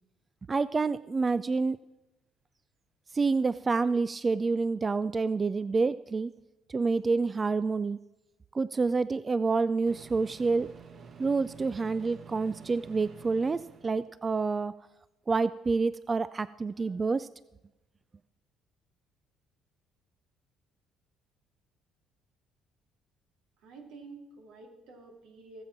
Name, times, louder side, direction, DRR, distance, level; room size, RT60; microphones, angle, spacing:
voice 1, 0.5-1.8 3.1-6.3 6.7-8.0 8.5-10.7 11.2-14.7 15.3-17.3, right 4 dB, 30° right, 17 dB, 0.3 m, -28 dB
Microwave oven, 8.9-9.0 9.9-14.1, right 6 dB, 50° right, 1.2 m, -50 dB
voice 2, 23.6-25.6, right 3 dB, 80° right, 3 dB, 2.8 m, -49 dB
18.5 x 7.4 x 5.9 m, 0.96 s
cardioid pair, 90°, 0 cm